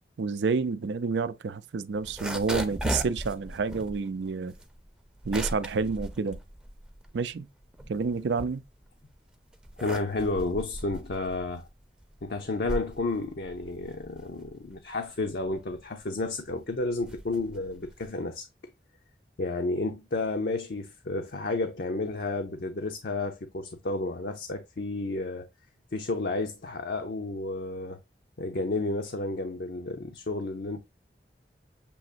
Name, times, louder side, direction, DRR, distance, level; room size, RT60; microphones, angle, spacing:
voice 1, 0.2-4.5 5.2-6.4 7.1-7.5 7.9-8.6, right 4 dB, 90° right, 0.4 m, -29 dB
sound 1, 1.9-7.2 7.6-9.0 9.5-18.3, right 1 dB, 5° right, 0.6 m, -38 dB
voice 2, 9.8-11.7 12.2-18.5 19.4-25.5 25.9-28.0 28.4-30.8, left 2 dB, 60° left, 0.6 m, -31 dB
6.9 x 2.9 x 2.4 m
head